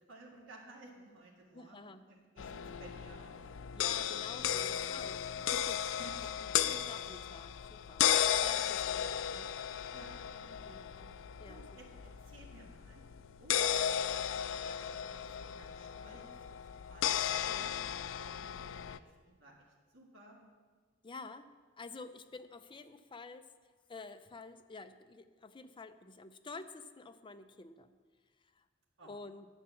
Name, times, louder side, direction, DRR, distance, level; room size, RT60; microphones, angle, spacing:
voice 1, 0.1-3.4 5.9-6.4 6.6-6.8 8.5-8.8 9.9-10.8 11.5-13.1 13.4-20.5 29.0-29.1, right 2 dB, 75° right, -2 dB, 1.9 m, -57 dB
voice 2, 1.5-2.0 3.7-5.9 6.4-8.0 8.4-9.0 9.3-9.5 10.6-11.6 17.4-17.7 21.0-21.5 21.8-23.5 23.9-27.9 28.5-28.6 29.0-29.5, left 3 dB, 25° left, 8 dB, 0.6 m, -49 dB
sound 1, 2.4-19.0, left 10 dB, 85° left, 0.4 m, -35 dB
10.5 x 8.0 x 7.1 m, 1.5 s
head